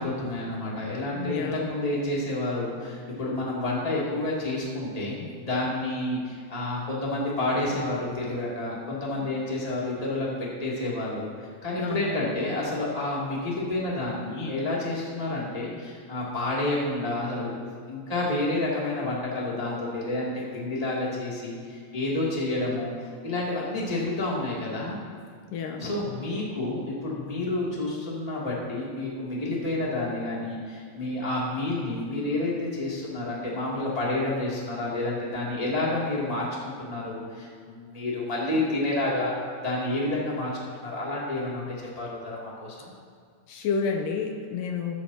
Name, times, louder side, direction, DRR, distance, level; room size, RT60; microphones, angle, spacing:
voice 1, 0.0-11.3 11.6-22.9 23.2-25.0 25.8-39.3 39.6-40.5 40.8-42.9, left 2 dB, 10° left, -5 dB, 2.1 m, -29 dB
voice 2, 1.1-1.6 11.8-12.3 25.5-25.8 43.5-45.0, left 5 dB, 80° left, 3 dB, 2.4 m, -30 dB
14.0 x 14.0 x 2.9 m, 2.2 s
omnidirectional pair, 4.0 m